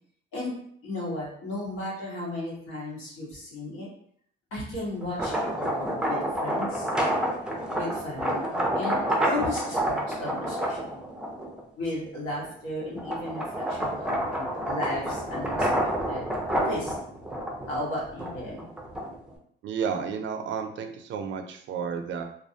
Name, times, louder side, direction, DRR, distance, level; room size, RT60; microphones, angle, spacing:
voice 1, 0.8-3.9 4.5-6.9 7.8-11.0 11.8-15.7 16.1-16.3 16.6-16.9 17.6-18.7, left 1 dB, 90° left, -5 dB, 1.2 m, -35 dB
sound 1, 5.0-11.6 12.1-19.3, right 1 dB, 5° right, 0.4 m, -29 dB
voice 2, 19.6-22.2, right 6 dB, 65° right, 6 dB, 0.4 m, -32 dB
2.3 x 2.0 x 2.6 m, 0.63 s
cardioid pair, 105°, 21 cm